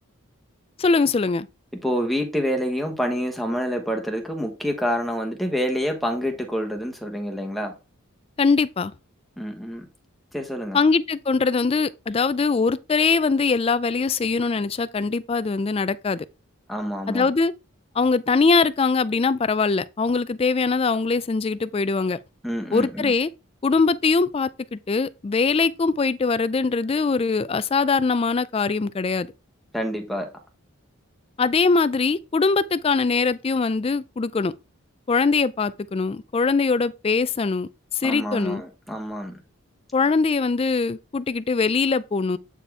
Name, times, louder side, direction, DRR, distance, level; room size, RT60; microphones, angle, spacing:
voice 1, 0.8-1.5 8.4-8.9 10.7-16.3 17.1-17.5 18.0-22.2 22.7-23.3 23.6-29.3 31.4-34.5 35.1-38.6 39.9-42.4, left 4 dB, 25° left, 0.3 m, -22 dB
voice 2, 1.8-7.7 9.4-9.8 10.3-10.8 16.7-17.3 22.4-23.1 29.7-30.3 38.0-39.4, equal, ahead, 1.1 m, -27 dB
8.4 x 4.1 x 3.5 m
head